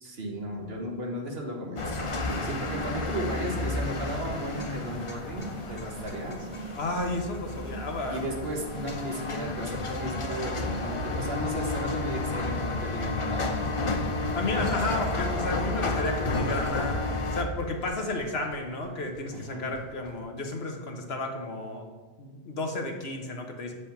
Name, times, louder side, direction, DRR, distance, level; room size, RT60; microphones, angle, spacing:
voice 1, 0.0-6.5 8.1-13.7 19.3-19.7, right 1 dB, 75° right, 0 dB, 1.6 m, -35 dB
sound 1, 1.8-17.4, left 2 dB, 35° left, 0.7 m, -31 dB
sound 2, 2.6-11.4, right 2 dB, 45° right, 1.1 m, -43 dB
voice 2, 6.8-8.2 14.3-17.0 17.3-21.9 22.2-23.7, left 2 dB, 75° left, 3 dB, 1.4 m, -32 dB
sound 3, 10.9-20.2, equal, 50° left, 1.5 m, -47 dB
8.8 x 5.0 x 5.8 m, 1.3 s
omnidirectional pair, 1.0 m